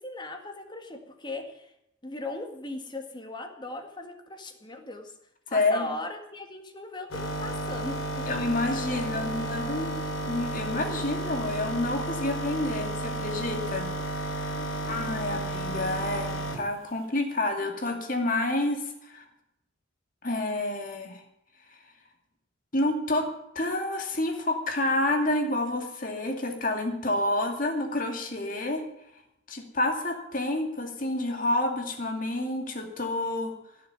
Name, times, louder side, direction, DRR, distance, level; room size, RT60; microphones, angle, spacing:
voice 1, 0.0-1.7 2.0-5.1 5.5-8.3 8.9-9.9 14.5-15.0, left 2 dB, 25° left, 5 dB, 1.8 m, -39 dB
voice 2, 5.5-5.9 8.3-10.0 10.3-13.9 14.1-14.6 14.9-19.2 20.2-21.2 22.7-23.3 23.5-28.8 29.5-33.5, left 2 dB, 45° left, 4 dB, 2.4 m, -29 dB
sound 1, 7.1-16.7, right 1 dB, 85° left, 3.0 m, -32 dB
16.0 x 6.8 x 9.3 m, 0.82 s
head